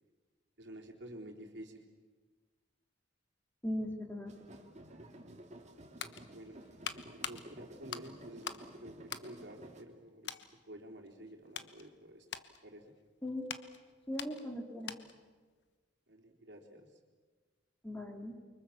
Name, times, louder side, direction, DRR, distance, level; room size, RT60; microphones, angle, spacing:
voice 1, 0.6-1.8 6.2-6.6 7.1-8.5 8.8-8.9 9.2-10.3 10.7-12.3 12.6-12.8 16.1-16.9, right 1 dB, 65° right, 2 dB, 3.7 m, -50 dB
voice 2, 3.6-4.3 13.2-13.5 14.1-14.9 17.8-18.4, left 1 dB, 10° left, 2 dB, 3.2 m, -39 dB
sound 1, 4.3-9.8, right 1 dB, 40° right, 2.7 m, -53 dB
sound 2, 5.6-8.7 9.0-10.0 10.2-10.5 11.0-15.3 15.6-15.7, left 8 dB, 70° left, 1.3 m, -45 dB
29.0 x 24.5 x 7.2 m, 1.4 s
head